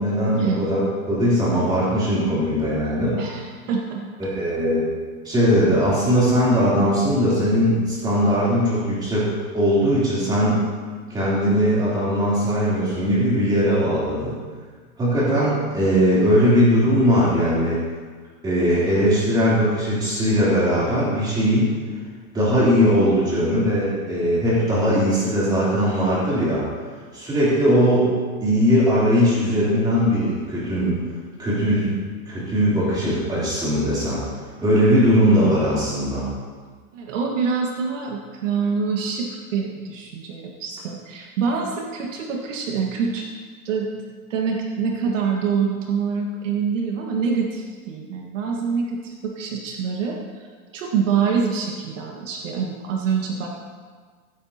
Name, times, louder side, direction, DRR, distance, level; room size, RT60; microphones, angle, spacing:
voice 1, 0.0-3.2 4.2-4.8 5.3-9.3 9.5-10.6 11.1-14.4 15.0-17.8 18.4-21.7 22.3-26.7 27.1-28.1 28.4-31.0 31.4-31.9 32.3-34.2 34.6-36.3, equal, 10° right, -8 dB, 3.3 m, -19 dB
voice 2, 3.2-4.0 36.9-43.3 43.7-43.9 44.3-50.5 50.7-53.5, right 6 dB, 60° right, 0 dB, 1.7 m, -25 dB
15.5 x 12.0 x 2.9 m, 1.5 s
supercardioid pair, 175°, 43 cm